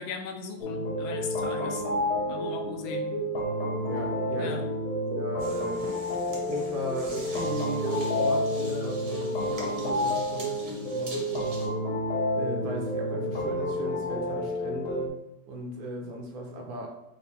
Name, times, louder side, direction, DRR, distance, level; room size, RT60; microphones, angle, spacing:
voice 1, 0.0-1.8 2.3-3.1 4.4-4.6, left 5 dB, 80° left, 4 dB, 1.4 m, -37 dB
sound 1, 0.6-15.1, left 1 dB, 60° left, 1.0 m, -30 dB
voice 2, 3.9-4.5 5.0-5.8 6.4-11.5 12.4-15.1 15.4-16.9, right 2 dB, 75° right, 0 dB, 1.5 m, -36 dB
sound 2, 5.4-11.7, right 2 dB, 50° right, 0.8 m, -45 dB
4.6 x 2.1 x 4.1 m, 0.84 s
omnidirectional pair, 2.2 m